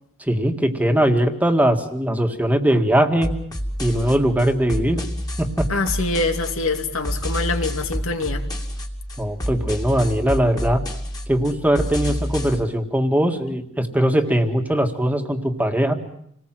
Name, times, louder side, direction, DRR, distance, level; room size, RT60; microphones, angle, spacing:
voice 1, 0.2-3.3 3.8-5.0 5.4-5.7 9.2-10.8 11.3-15.9, right 1 dB, 10° right, 4 dB, 1.9 m, -20 dB
sound 1, 3.2-12.6, equal, 20° left, 2.6 m, -29 dB
voice 2, 5.7-8.4, left 3 dB, 80° left, 6 dB, 2.6 m, -24 dB
28.0 x 19.5 x 7.7 m, 0.74 s
head